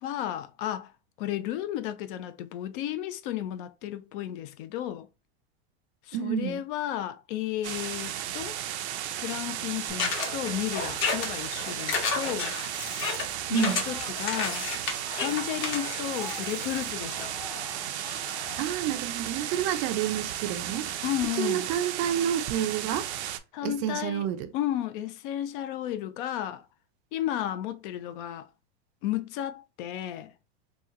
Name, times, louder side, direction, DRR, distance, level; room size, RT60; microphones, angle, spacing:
voice 1, 0.0-0.9 1.2-5.1 6.1-8.6 9.2-12.6 13.5-14.7 15.1-17.3 21.0-21.7 23.5-24.3 24.5-26.6 27.1-28.5 29.0-30.3, left 12 dB, 55° left, 0.5 m, -33 dB
voice 2, 6.1-6.6 13.5-13.8 18.6-20.9 21.4-23.1 23.6-24.5, right 10 dB, 40° right, 0.4 m, -29 dB
sound 1, 7.6-23.4, right 11 dB, 90° right, 0.6 m, -34 dB
Screaming, 9.9-14.5 14.8-18.7, left 4 dB, 15° left, 0.6 m, -48 dB
sound 2, 10.0-16.9, left 5 dB, 40° left, 1.0 m, -32 dB
3.0 x 2.2 x 3.6 m
supercardioid pair, 140°, 32 cm